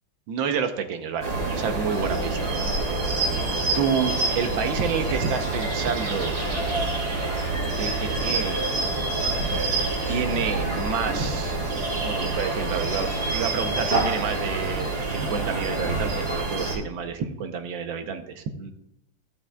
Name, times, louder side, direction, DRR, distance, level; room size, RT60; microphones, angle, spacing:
voice 1, 0.3-2.8 3.7-6.4 7.8-8.6 10.1-11.6 12.0-14.9 15.1-18.7, right 6 dB, 70° right, 7 dB, 1.4 m, -29 dB
sound 1, 1.2-16.8, right 2 dB, 50° right, 2.7 m, -27 dB
Bus, 2.0-11.8, right 1 dB, 90° right, 2.5 m, -39 dB
15.0 x 7.0 x 2.2 m, 0.83 s
omnidirectional pair, 2.3 m